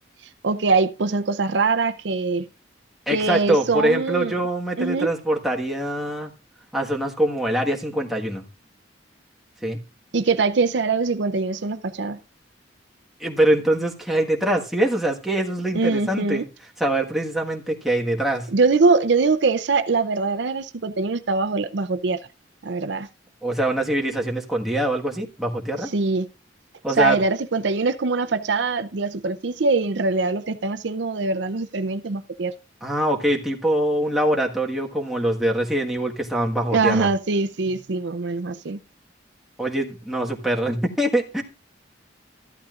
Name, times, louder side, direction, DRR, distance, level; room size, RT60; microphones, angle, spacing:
voice 1, 0.4-2.5 3.1-4.4 4.8-5.1 10.1-12.2 15.7-16.5 18.5-22.2 22.6-23.1 25.8-26.3 27.0-32.5 36.7-38.8, right 4 dB, 70° right, 0.6 m, -22 dB
voice 2, 3.1-6.3 6.7-8.4 9.6-9.8 13.2-16.4 16.8-18.5 23.4-25.9 26.8-27.2 32.8-37.1 39.6-41.4, right 1 dB, ahead, 1.5 m, -23 dB
13.5 x 11.5 x 2.5 m
head